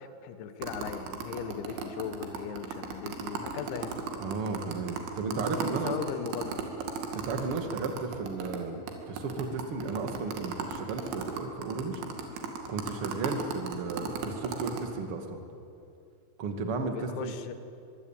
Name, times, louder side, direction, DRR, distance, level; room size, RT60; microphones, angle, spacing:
voice 1, 0.0-4.0 5.7-6.7 16.9-17.5, left 8 dB, 85° left, 9 dB, 3.8 m, -38 dB
sound 1, 0.6-8.6 8.9-9.0 9.2-14.8, right 6 dB, 90° right, 4.7 m, -36 dB
voice 2, 4.2-5.9 7.1-12.0 12.7-15.4 16.4-17.3, right 4 dB, 40° right, 5 dB, 2.3 m, -34 dB
24.5 x 23.5 x 9.0 m, 2.6 s
omnidirectional pair, 5.2 m